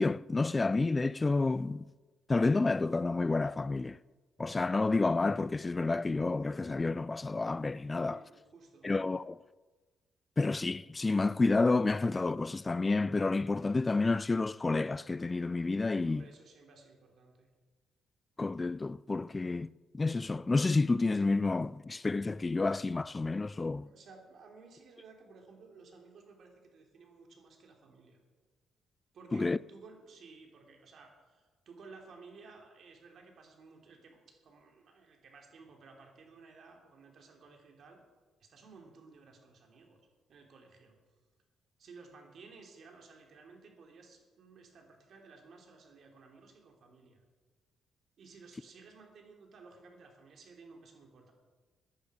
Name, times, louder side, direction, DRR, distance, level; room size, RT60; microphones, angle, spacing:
voice 1, 0.0-1.9 2.3-4.0 4.4-8.2 8.8-9.4 10.4-16.3 18.4-23.9 29.3-29.6, left 3 dB, 25° left, 0.4 m, -30 dB
voice 2, 8.1-8.9 16.0-17.5 23.7-28.2 29.1-38.0 38.4-40.0 40.3-41.0 41.8-47.2 48.2-51.3, right 4 dB, 60° right, 3.1 m, -55 dB
16.0 x 10.5 x 5.1 m
cardioid pair, 90°, 0 cm